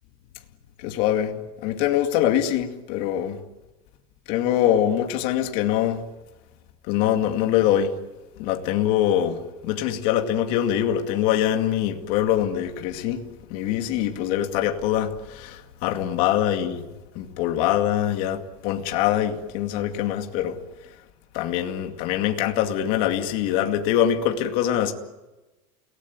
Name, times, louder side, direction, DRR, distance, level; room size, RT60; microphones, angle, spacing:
voice 1, 0.8-3.4 4.3-6.0 6.9-7.9 8.4-13.3 13.5-16.8 17.1-20.6 21.3-24.9, left 11 dB, 50° left, 2.3 m, -23 dB
29.0 x 18.5 x 9.5 m
supercardioid pair, 170°, 19 cm